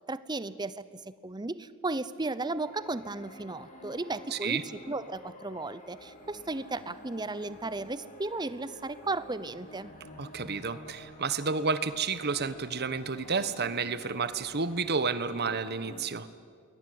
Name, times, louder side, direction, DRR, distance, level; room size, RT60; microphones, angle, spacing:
voice 1, 0.1-9.9, right 2 dB, 20° right, 15 dB, 0.8 m, -35 dB
sound 1, 2.4-16.0, left 1 dB, 35° left, 4.4 m, -50 dB
voice 2, 4.3-4.6 10.2-16.3, right 4 dB, 50° right, 13 dB, 1.2 m, -31 dB
28.5 x 21.5 x 9.5 m, 2.1 s
head